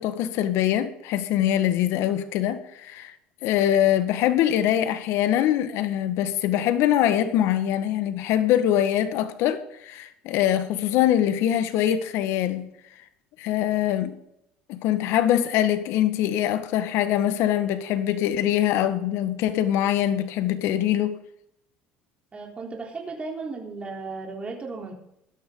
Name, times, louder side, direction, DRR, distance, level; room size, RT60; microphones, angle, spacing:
voice 1, 0.0-3.1 3.4-12.7 13.4-14.1 14.7-21.2, left 11 dB, 65° left, 1.6 m, -23 dB
voice 2, 22.3-24.9, right 3 dB, 25° right, 3.8 m, -35 dB
17.0 x 12.5 x 4.0 m
supercardioid pair, 85°, 5 cm